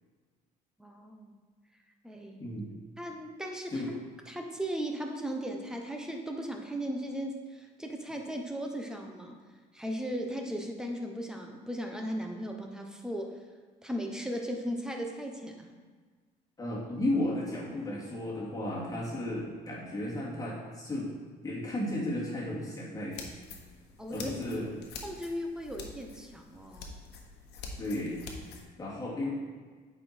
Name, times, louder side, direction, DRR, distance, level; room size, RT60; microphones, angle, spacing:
voice 1, 0.8-1.4 2.0-2.5 3.0-3.8 4.3-9.4 9.7-13.4 13.8-15.7 24.0-24.3 24.6-24.7 25.0-26.9, equal, 5° right, 2 dB, 1.0 m, -37 dB
voice 2, 2.4-2.7 3.7-3.9 16.6-21.1 21.4-23.2 24.1-24.7 27.8-28.2 28.8-29.3, left 1 dB, 20° left, -5 dB, 2.5 m, -34 dB
sound 1, 23.1-28.6, left 4 dB, 80° left, 1.2 m, -46 dB
8.5 x 5.0 x 4.4 m, 1.5 s
cardioid pair, 110°, 17 cm